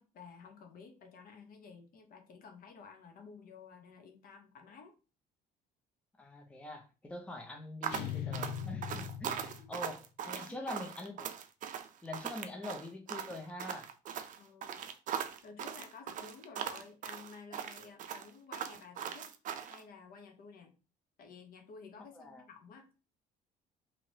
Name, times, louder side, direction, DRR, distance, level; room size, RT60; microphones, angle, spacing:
voice 1, 0.0-4.9 9.3-9.7 10.2-10.7 14.4-14.9 15.4-19.3 19.7-20.8 21.2-22.9, left 5 dB, 60° left, 0.8 m, -53 dB
voice 2, 6.2-10.0 10.3-11.3 12.0-13.9 22.1-22.4, left 2 dB, 5° left, 0.5 m, -44 dB
sound 1, 7.8-19.8, right 8 dB, 50° right, 0.4 m, -40 dB
sound 2, 7.9-10.0, left 9 dB, 80° left, 0.4 m, -40 dB
3.2 x 2.9 x 2.7 m
cardioid pair, 110°, 17 cm